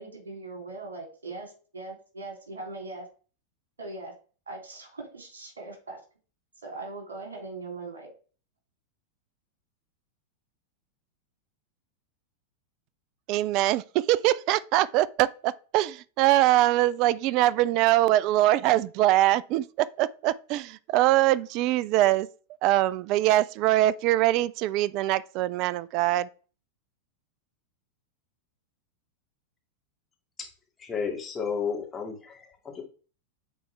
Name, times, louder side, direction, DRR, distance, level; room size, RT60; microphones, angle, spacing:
voice 1, 0.0-3.1 3.8-4.1 4.5-6.0 6.6-8.1, right 3 dB, 70° right, 3.2 m, -40 dB
voice 2, 13.3-22.3 22.6-26.3, right 15 dB, 40° right, 0.4 m, -23 dB
voice 3, 30.8-32.8, left 6 dB, 15° left, 2.2 m, -32 dB
9.2 x 4.2 x 3.4 m
figure-of-eight pair, 90°, 0 cm